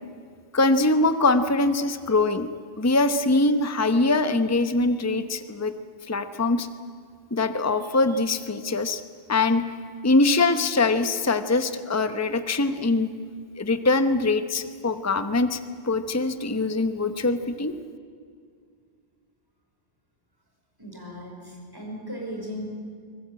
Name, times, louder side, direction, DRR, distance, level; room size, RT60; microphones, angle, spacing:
voice 1, 0.5-2.5 2.8-5.7 6.1-6.7 7.3-9.0 9.3-9.6 10.0-13.1 13.6-15.6 15.8-17.7, left 3 dB, 15° left, 10 dB, 0.9 m, -23 dB
voice 2, 20.8-22.7, equal, 20° right, -1 dB, 5.5 m, -37 dB
23.5 x 20.0 x 8.9 m, 2.1 s
omnidirectional pair, 1.2 m